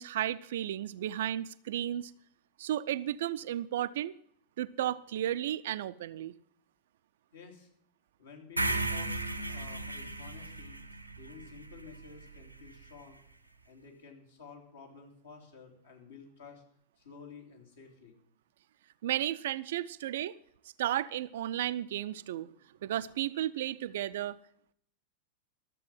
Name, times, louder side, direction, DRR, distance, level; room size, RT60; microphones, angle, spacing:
voice 1, 0.0-2.1 2.6-4.1 4.6-6.3 19.0-20.4 20.8-22.5 22.8-24.4, right 12 dB, 55° right, 14 dB, 0.5 m, -33 dB
voice 2, 7.3-7.7 8.2-10.8 11.2-13.2 13.6-16.6 17.0-18.1, left 5 dB, 65° left, 1 dB, 3.1 m, -52 dB
sound 1, 8.6-12.7, right 2 dB, 90° right, 1.0 m, -36 dB
13.0 x 7.5 x 7.5 m, 0.65 s
figure-of-eight pair, 90°, 0 cm